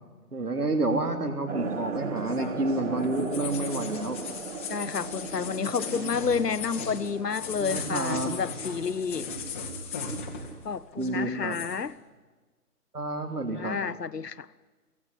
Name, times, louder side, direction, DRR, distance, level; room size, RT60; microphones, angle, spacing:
voice 1, 0.3-4.2 7.6-8.4 11.0-11.6 12.9-13.8, right 2 dB, 70° right, 3.5 m, -29 dB
sound 1, 1.5-9.4, right 5 dB, 50° right, 1.1 m, -38 dB
sound 2, 1.6-10.7 10.9-11.8, left 4 dB, 10° left, 0.9 m, -38 dB
voice 2, 4.7-9.3 10.6-11.9 13.6-14.5, left 6 dB, 80° left, 0.9 m, -30 dB
24.0 x 16.5 x 9.9 m
figure-of-eight pair, 145°, 47 cm